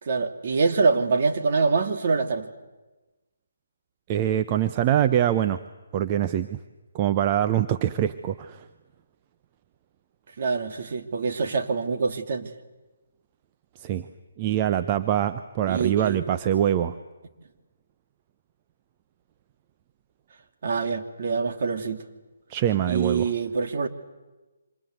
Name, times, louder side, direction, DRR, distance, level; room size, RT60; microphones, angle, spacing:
voice 1, 0.0-2.5 10.4-12.5 15.7-16.3 20.6-22.0 22.9-23.9, right 4 dB, 50° right, 5 dB, 2.8 m, -25 dB
voice 2, 4.1-5.6 5.9-6.6 6.9-8.6 13.8-14.1 14.4-16.9 22.5-23.3, right 11 dB, 30° right, 9 dB, 0.9 m, -24 dB
27.0 x 26.0 x 8.1 m, 1.1 s
figure-of-eight pair, 140°, 0 cm